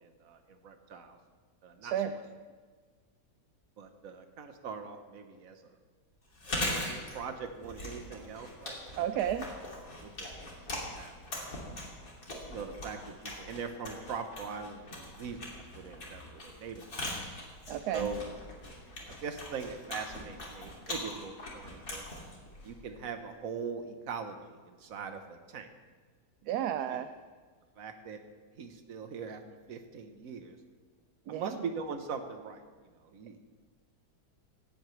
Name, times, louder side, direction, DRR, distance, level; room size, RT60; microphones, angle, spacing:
voice 1, 0.0-1.2 1.6-2.2 3.8-5.7 6.6-9.0 10.0-10.4 10.7-11.1 11.5-11.7 12.5-17.2 17.9-18.2 19.0-22.1 22.6-25.7 26.5-27.0 27.8-28.2 28.6-29.4 29.7-30.6 31.3-32.6 33.0-33.4, right 5 dB, 55° right, 6 dB, 1.4 m, -41 dB
voice 2, 1.8-2.1 9.0-9.5 17.7-18.1 26.5-27.1 31.3-31.5, right 10 dB, 75° right, 9 dB, 1.1 m, -32 dB
Chewing mastication, 6.3-23.1, left 1 dB, 55° left, 3.0 m, -41 dB
17.5 x 13.5 x 3.3 m, 1.5 s
omnidirectional pair, 1.8 m